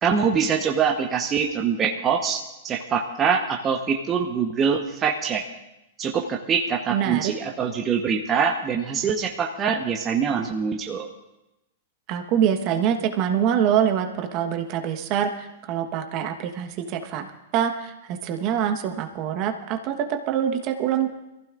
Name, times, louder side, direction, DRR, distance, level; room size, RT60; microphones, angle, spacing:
voice 1, 0.0-5.4 6.0-11.1, right 6 dB, 25° right, 2 dB, 1.1 m, -24 dB
voice 2, 6.9-7.3 12.1-17.3 17.5-21.1, right 9 dB, 45° right, 5 dB, 1.3 m, -25 dB
22.5 x 15.0 x 2.5 m, 0.92 s
hypercardioid pair, 110°, 0 cm